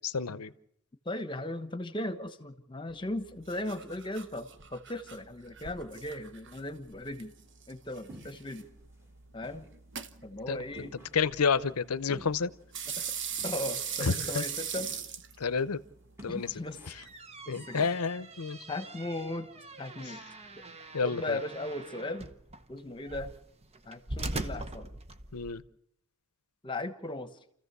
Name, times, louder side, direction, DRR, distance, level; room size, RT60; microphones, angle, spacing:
voice 1, 0.1-0.5 10.5-10.9 11.1-12.5 14.0-14.4 15.4-15.8 16.2-16.5 17.5-18.6 20.9-21.4 25.3-25.6, left 5 dB, 80° left, 15 dB, 0.8 m, -30 dB
voice 2, 1.0-7.3 7.7-8.7 9.3-9.7 10.2-11.0 12.8-13.1 13.4-14.9 16.3-16.8 17.5-17.9 18.7-19.5 19.8-20.2 21.0-22.3 22.7-23.3 23.9-25.0 26.6-27.3, left 1 dB, 20° left, 8 dB, 1.2 m, -37 dB
sound 1, 2.9-17.1, right 7 dB, 55° right, 1.0 m, -42 dB
sound 2, 8.1-8.7 9.0-9.1 9.4-9.7 10.0-10.1 10.8-11.3 12.1-12.5 13.4-13.9 14.8-15.2 15.5-15.6 16.2-17.1 17.5-18.2, right 1 dB, 10° right, 1.9 m, -51 dB
sound 3, 16.7-25.6, right 2 dB, 30° right, 0.8 m, -42 dB
29.0 x 14.5 x 6.8 m, 0.73 s
head